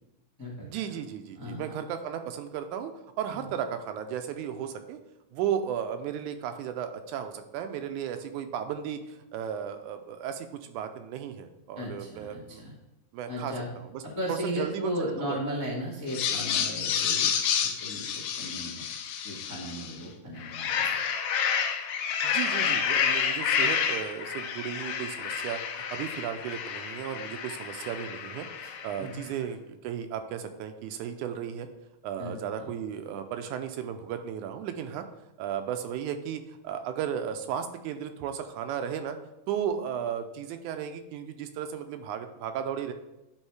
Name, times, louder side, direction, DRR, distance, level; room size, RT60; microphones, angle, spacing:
voice 1, 0.6-2.9 3.2-5.0 5.3-12.6 13.1-14.0 14.3-15.4 22.2-28.5 28.8-31.7 32.0-35.1 35.4-39.2 39.5-42.9, right 8 dB, 85° right, 8 dB, 2.0 m, -35 dB
voice 2, 1.3-1.7 3.3-3.5 11.7-12.7 13.3-13.7 14.0-18.8 19.2-21.0 29.0-29.3 32.2-32.3 32.6-32.7, equal, 25° left, -3 dB, 0.4 m, -36 dB
sound 1, 16.1-20.0 20.4-29.1, left 7 dB, 80° left, 1.8 m, -29 dB
9.9 x 3.6 x 4.7 m, 0.96 s
omnidirectional pair, 3.6 m